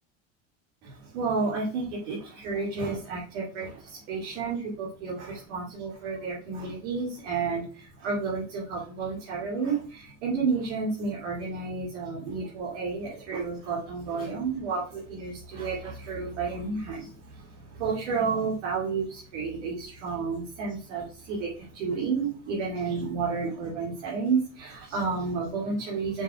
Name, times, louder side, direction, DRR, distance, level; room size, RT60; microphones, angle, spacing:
voice 1, 0.8-26.2, right 4 dB, 80° right, -4 dB, 2.9 m, -31 dB
6.6 x 4.8 x 4.7 m, 0.40 s
supercardioid pair, 110°, 35 cm